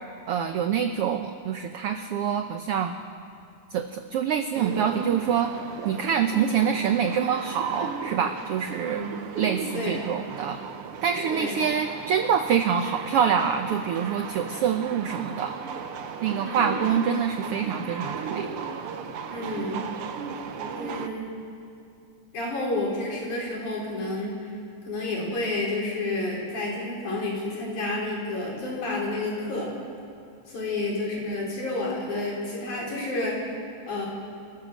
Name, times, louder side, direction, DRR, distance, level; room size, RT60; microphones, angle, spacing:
voice 1, 0.3-2.9 3.7-5.5 5.8-9.0 9.4-10.6 11.0-15.5 16.2-18.5, right 7 dB, 85° right, 7 dB, 1.3 m, -26 dB
sound 1, 4.5-21.1, right 6 dB, 65° right, 1.5 m, -36 dB
voice 2, 19.3-19.8 20.8-21.3 22.3-24.4 24.8-29.7 30.5-33.4 33.9-34.1, left 2 dB, 70° left, -4 dB, 5.9 m, -30 dB
28.0 x 14.5 x 6.5 m, 2.6 s
omnidirectional pair, 3.6 m